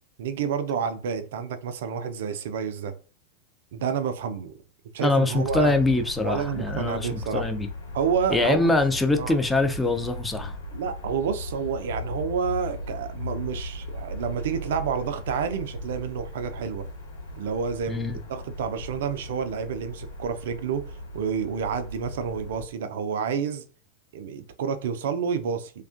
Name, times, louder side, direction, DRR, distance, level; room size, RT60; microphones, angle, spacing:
voice 1, 0.2-2.9 3.7-4.5 4.9-5.7 6.2-7.5 7.9-8.7 9.2-9.4 10.7-16.9 17.4-23.6 24.1-25.7, right 7 dB, 60° right, 0.4 m, -29 dB
voice 2, 5.0-7.7 8.3-10.6 17.9-18.2, left 2 dB, 10° left, 0.4 m, -24 dB
sound 1, 5.3-22.6, left 1 dB, 90° left, 1.1 m, -37 dB
2.3 x 2.2 x 2.4 m
figure-of-eight pair, 90°, 0 cm